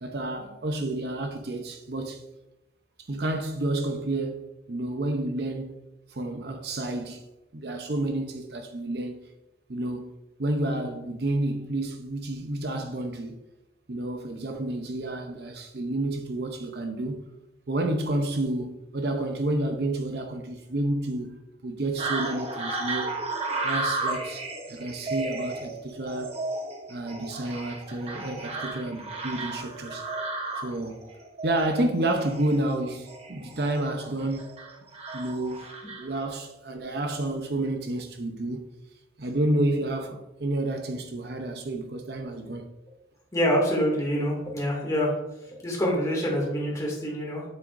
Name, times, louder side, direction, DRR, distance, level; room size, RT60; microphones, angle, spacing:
voice 1, 0.0-2.2 3.1-5.8 6.1-7.2 7.5-9.2 9.7-13.4 13.9-17.2 17.7-21.3 21.6-23.1 23.6-24.4 24.7-26.4 26.9-30.1 30.6-31.1 31.4-34.5 35.1-35.7 36.0-38.6 39.2-42.7, right 1 dB, 55° right, 0.7 m, -30 dB
sound 1, 22.0-36.2, right 2 dB, 30° right, 1.0 m, -34 dB
voice 2, 43.3-45.1 45.6-47.4, equal, 20° left, 2.3 m, -26 dB
8.9 x 7.5 x 2.6 m
head